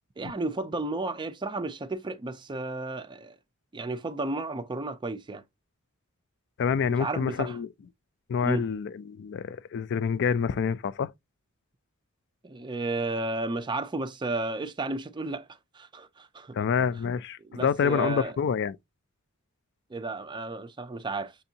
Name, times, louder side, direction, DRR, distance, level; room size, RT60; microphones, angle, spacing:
voice 1, 0.2-3.4 3.7-5.4 7.0-7.6 8.4-8.7 12.4-15.5 15.7-16.5 17.5-18.3 19.9-21.4, right 2 dB, 20° right, 0.4 m, -33 dB
voice 2, 6.6-7.7 8.3-11.1 16.5-18.8, left 6 dB, 55° left, 0.3 m, -27 dB
6.8 x 2.6 x 2.7 m
head